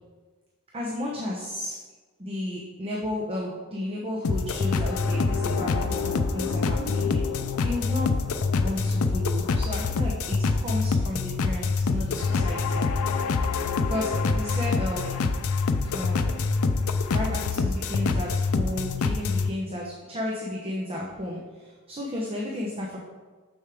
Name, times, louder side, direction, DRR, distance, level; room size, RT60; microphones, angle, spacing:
voice 1, 0.7-1.8 2.2-8.1 8.6-12.9 13.9-15.3 15.9-16.4 17.1-23.0, left 1 dB, 25° right, -3 dB, 0.8 m, -33 dB
sound 1, 4.2-19.5, left 4 dB, 70° left, 0.4 m, -26 dB
6.8 x 6.3 x 3.5 m, 1.4 s
head